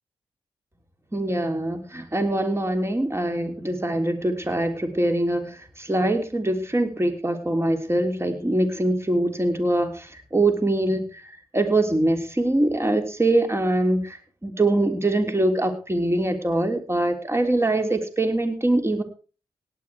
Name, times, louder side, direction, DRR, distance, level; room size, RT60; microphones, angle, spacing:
voice 1, 1.1-19.0, right 1 dB, 20° right, 6 dB, 3.3 m, -23 dB
17.5 x 10.0 x 4.7 m, 0.37 s
supercardioid pair, 40°, 12 cm